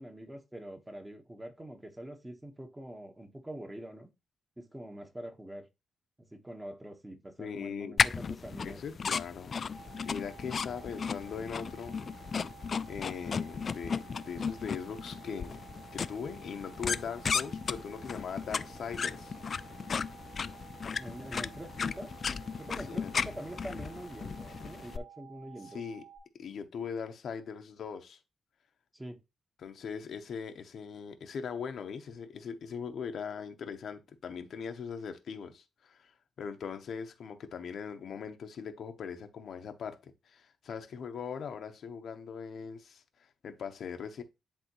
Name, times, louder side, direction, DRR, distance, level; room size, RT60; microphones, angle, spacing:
voice 1, 0.0-4.1 4.6-5.7 6.3-8.8 20.9-22.1 22.6-25.8 28.9-29.2, right 1 dB, 15° right, 1.3 m, -44 dB
voice 2, 7.4-8.0 8.6-9.5 10.0-12.0 12.9-15.7 15.9-19.4 22.9-23.4 25.6-26.0 26.4-28.2 29.6-44.2, left 6 dB, 70° left, 0.9 m, -40 dB
sound 1, 8.0-25.0, left 6 dB, 50° left, 0.3 m, -35 dB
sound 2, 9.7-26.2, right 9 dB, 35° right, 4.5 m, -53 dB
10.5 x 3.6 x 3.1 m
cardioid pair, 85°, 0 cm